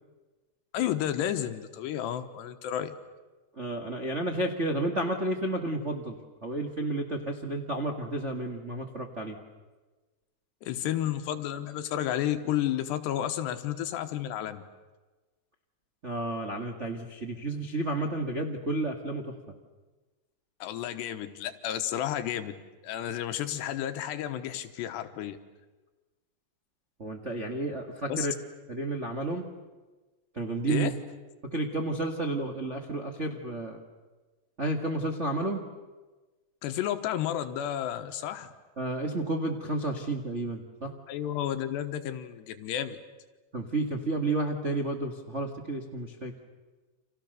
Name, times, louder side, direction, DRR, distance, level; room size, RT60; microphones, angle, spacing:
voice 1, 0.7-2.9 10.6-14.6 20.6-22.6 22.8-25.4 28.1-28.3 30.7-30.9 36.6-38.5 41.1-43.0, left 11 dB, 80° left, 8 dB, 3.3 m, -31 dB
voice 2, 3.5-9.4 16.0-19.3 27.0-28.3 28.7-29.5 30.3-30.9 31.5-33.8 34.6-35.6 38.8-40.9 43.5-46.3, right 2 dB, 55° right, 2 dB, 0.7 m, -31 dB
30.0 x 27.5 x 6.7 m, 1.2 s
omnidirectional pair, 5.0 m